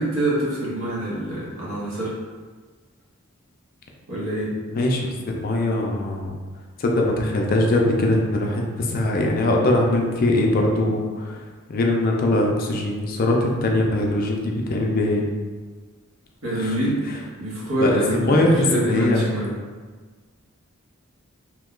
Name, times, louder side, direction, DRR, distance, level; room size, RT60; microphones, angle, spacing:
voice 1, 0.0-2.1 4.1-4.5 16.4-19.6, right 1 dB, 70° right, -6 dB, 1.0 m, -25 dB
voice 2, 4.7-5.0 5.4-6.2 6.8-11.3 11.7-15.2 16.6-16.7 17.8-19.2, left 1 dB, 45° left, 0 dB, 0.4 m, -21 dB
2.9 x 2.2 x 3.7 m, 1.4 s
head